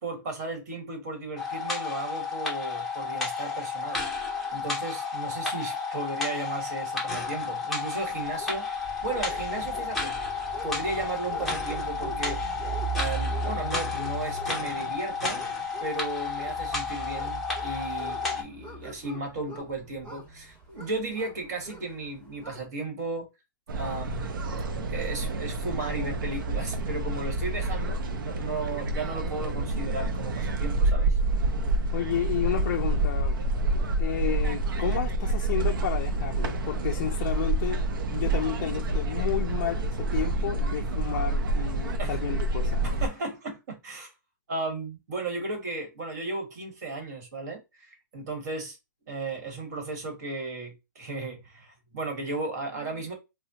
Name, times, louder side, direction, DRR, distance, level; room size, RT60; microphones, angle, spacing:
voice 1, 0.0-8.7 9.0-10.2 10.6-15.4 15.8-23.3 23.7-24.5 24.9-31.2 42.0-42.2 42.8-44.1 44.5-48.8 49.1-53.1, right 2 dB, 50° right, 1.6 m, -35 dB
sound 1, 1.4-18.4, left 4 dB, ahead, 0.7 m, -32 dB
sound 2, 8.1-22.6, right 3 dB, 30° right, 1.7 m, -39 dB
sound 3, 23.7-43.1, right 2 dB, 75° right, 0.6 m, -28 dB
voice 2, 31.9-33.4 34.0-37.8 38.1-42.8, left 10 dB, 45° left, 0.4 m, -32 dB
4.1 x 2.2 x 2.8 m
hypercardioid pair, 165°, 11 cm